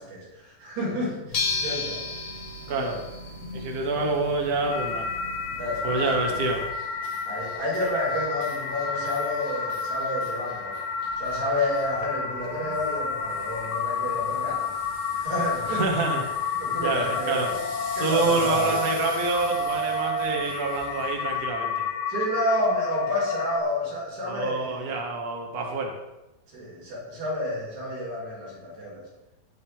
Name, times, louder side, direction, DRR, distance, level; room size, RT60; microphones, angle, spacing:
voice 1, 0.0-2.0 2.6-2.9 5.6-6.1 7.3-10.8 11.2-14.8 15.1-15.8 16.5-17.6 17.9-18.8 22.1-24.9 26.5-29.1, left 1 dB, 45° right, -6 dB, 5.9 m, -30 dB
sound 1, 1.3-6.7, left 3 dB, 50° left, 2.4 m, -34 dB
voice 2, 2.7-3.0 3.5-5.1 5.8-6.6 15.7-16.2 16.8-17.5 18.0-21.8 24.3-26.0, right 3 dB, 75° right, 0 dB, 0.8 m, -27 dB
sound 2, 4.7-23.6, left 4 dB, 85° left, 2.9 m, -30 dB
sound 3, 5.9-21.5, equal, ahead, 2.4 m, -46 dB
19.5 x 6.8 x 3.5 m, 0.98 s
omnidirectional pair, 4.7 m